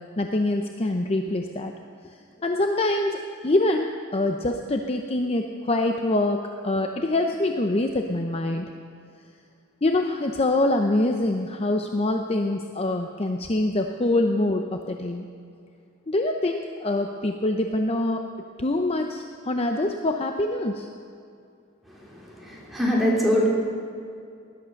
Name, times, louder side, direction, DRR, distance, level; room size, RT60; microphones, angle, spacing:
voice 1, 0.2-1.7 2.0-8.7 9.8-15.3 16.1-18.2 18.6-20.9, left 2 dB, 30° left, 4 dB, 0.7 m, -25 dB
voice 2, 21.9-23.5, equal, ahead, -5 dB, 3.6 m, -24 dB
19.5 x 11.5 x 6.5 m, 2.4 s
head